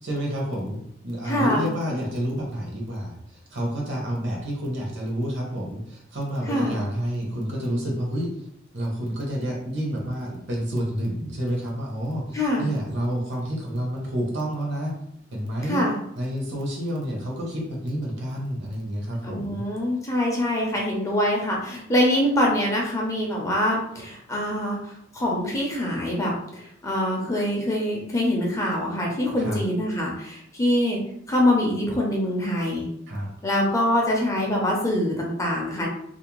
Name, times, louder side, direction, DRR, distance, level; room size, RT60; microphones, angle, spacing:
voice 1, 0.0-8.3 8.7-15.0 15.3-15.8 16.2-19.6 29.4-29.6 33.1-33.3, equal, 60° right, -1 dB, 0.8 m, -29 dB
voice 2, 1.2-1.7 6.5-6.8 12.3-12.7 15.7-16.0 19.2-31.0 31.3-32.9 33.4-35.9, left 1 dB, 15° left, -2 dB, 0.5 m, -24 dB
2.5 x 2.1 x 2.9 m, 0.72 s
head